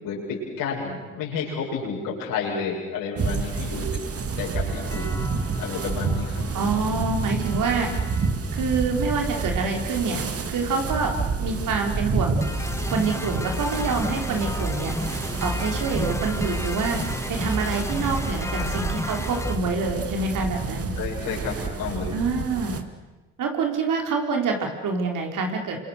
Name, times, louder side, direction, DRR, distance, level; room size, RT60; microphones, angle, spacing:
voice 1, 0.0-3.9 4.4-5.2 5.6-6.4 18.5-18.9 21.0-22.2, left 5 dB, 65° left, -4 dB, 7.6 m, -31 dB
sound 1, 3.2-22.8, right 4 dB, 40° right, 2.5 m, -29 dB
sound 2, 4.7-19.6, left 1 dB, 10° left, 2.2 m, -34 dB
voice 2, 6.5-7.9 8.5-10.2 10.5-11.1 11.4-12.5 12.9-14.9 15.4-17.0 17.3-20.9 22.1-22.8 23.4-25.8, right 4 dB, 60° right, 2 dB, 4.5 m, -26 dB
29.5 x 26.0 x 6.7 m, 1.2 s
hypercardioid pair, 50°, 36 cm